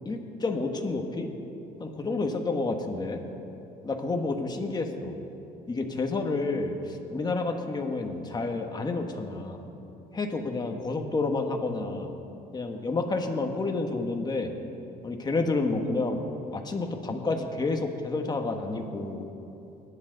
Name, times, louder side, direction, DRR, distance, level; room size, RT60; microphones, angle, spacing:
voice 1, 0.0-1.3 1.8-3.2 3.8-5.1 5.7-9.6 10.1-12.1 12.5-14.5 15.0-16.2 16.5-19.3, left 3 dB, 25° left, 4 dB, 1.4 m, -30 dB
21.5 x 10.0 x 4.0 m, 3.0 s
cardioid pair, 110°, 17 cm